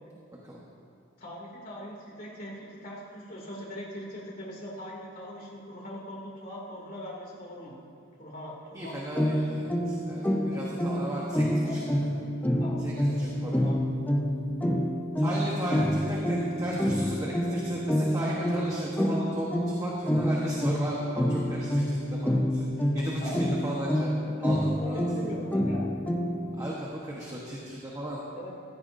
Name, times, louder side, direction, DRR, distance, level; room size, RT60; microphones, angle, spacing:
voice 1, 1.2-7.8 8.2-9.0 10.4-11.9 12.6-12.9 13.2-13.8 23.2-23.4 24.2-25.9 28.3-28.5, equal, 45° left, -4 dB, 2.6 m, -41 dB
voice 2, 8.7-12.1 12.8-13.5 15.2-22.7 22.9-23.3 23.6-24.1 24.4-25.0 26.6-28.2, right 1 dB, 15° right, -4 dB, 1.2 m, -35 dB
sound 1, 9.1-26.6, equal, 10° left, 0.6 m, -28 dB
15.0 x 14.0 x 2.7 m, 2.6 s
head